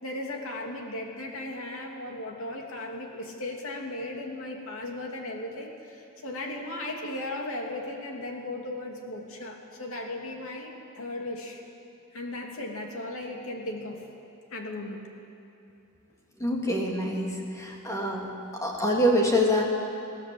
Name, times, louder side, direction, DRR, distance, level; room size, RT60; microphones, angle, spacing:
voice 1, 0.0-11.6 12.1-14.0 14.5-15.0, left 1 dB, 65° left, 1 dB, 2.9 m, -36 dB
voice 2, 16.4-19.6, equal, 15° left, -1 dB, 2.9 m, -26 dB
22.5 x 16.5 x 7.9 m, 2.9 s
head